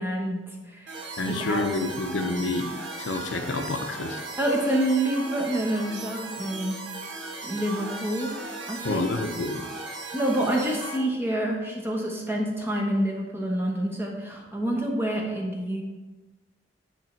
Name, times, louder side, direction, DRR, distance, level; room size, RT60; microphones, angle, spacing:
voice 1, 0.0-1.0 1.3-1.6 4.4-6.8 7.4-8.3 8.7-9.0 10.1-15.8, right 1 dB, 10° right, -1 dB, 1.0 m, -27 dB
sound 1, 0.9-11.0, right 3 dB, 85° right, 1.1 m, -37 dB
voice 2, 1.2-4.2 8.8-9.6, left 2 dB, 75° left, 6 dB, 0.6 m, -29 dB
8.9 x 3.2 x 4.4 m, 1.2 s
head